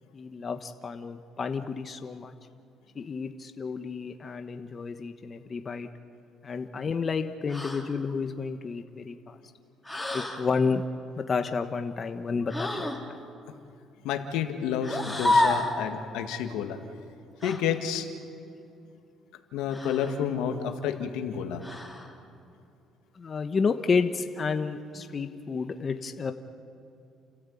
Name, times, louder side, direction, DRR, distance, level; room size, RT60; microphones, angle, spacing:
voice 1, 0.1-2.3 2.9-5.9 6.4-9.4 10.1-10.8 11.2-12.9 23.1-26.3, left 5 dB, 40° left, 7 dB, 1.2 m, -30 dB
sound 1, 7.5-7.9 9.9-10.4 12.5-13.0 14.8-15.8 17.4-17.6 19.7-20.2 21.6-22.1, left 2 dB, 5° left, 3.5 m, -28 dB
voice 2, 14.0-16.8 17.4-18.1 19.5-21.6, left 8 dB, 85° left, 6 dB, 1.8 m, -30 dB
30.0 x 14.0 x 8.5 m, 2.6 s
cardioid pair, 90°, 0 cm